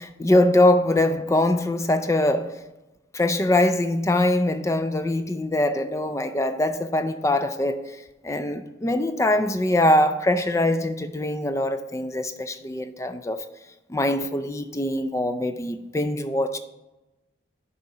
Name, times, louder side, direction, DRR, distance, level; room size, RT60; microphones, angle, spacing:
voice 1, 0.0-2.6 3.1-8.0 8.2-13.5 13.9-16.6, left 1 dB, 15° left, 0.4 m, -23 dB
6.6 x 5.5 x 4.8 m
head